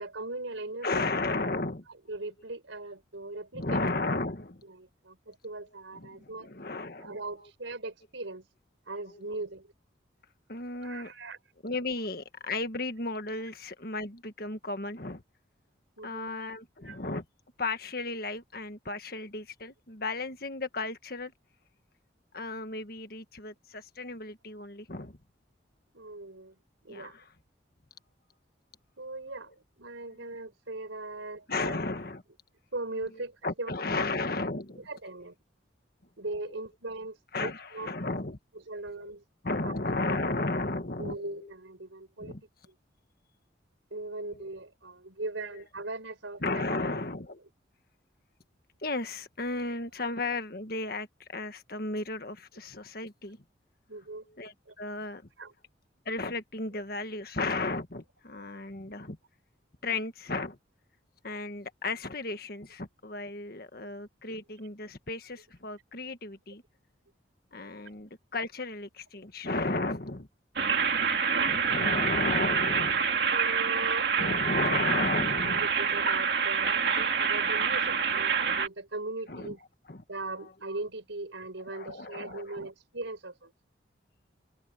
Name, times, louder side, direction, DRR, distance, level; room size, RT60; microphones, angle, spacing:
voice 1, 0.0-1.1 2.1-3.8 4.7-6.5 7.0-8.5 8.9-9.7 10.8-11.4 16.0-16.3 16.8-17.0 25.9-26.6 26.8-27.2 29.0-29.5 29.8-31.8 32.7-34.0 34.8-35.4 36.2-37.9 38.7-39.2 39.6-39.8 40.0-40.1 41.0-42.4 42.7-42.8 43.9-47.0 53.9-54.3 54.7-54.8 55.4-55.5 63.8-63.9 71.2-71.6 73.3-74.8 75.6-79.6 80.1-83.5, right 2 dB, 90° right, 5.4 m, -39 dB
voice 2, 0.8-1.8 3.5-4.6 5.9-7.1 10.5-11.1 11.6-15.2 16.0-17.2 17.6-21.3 22.3-25.2 26.9-27.2 31.5-32.2 33.4-34.9 37.3-38.4 38.9-39.1 39.4-41.2 42.2-42.4 44.3-44.4 46.4-47.4 48.8-53.4 54.4-55.3 56.0-59.2 59.8-60.6 61.2-66.6 67.5-70.3 71.5-73.0 74.2-75.7 79.3-79.5 79.9-80.0 81.7-82.7, left 2 dB, 50° left, 1.6 m, -34 dB
sound 1, 70.6-78.7, right 6 dB, 55° right, 2.5 m, -27 dB
open air
head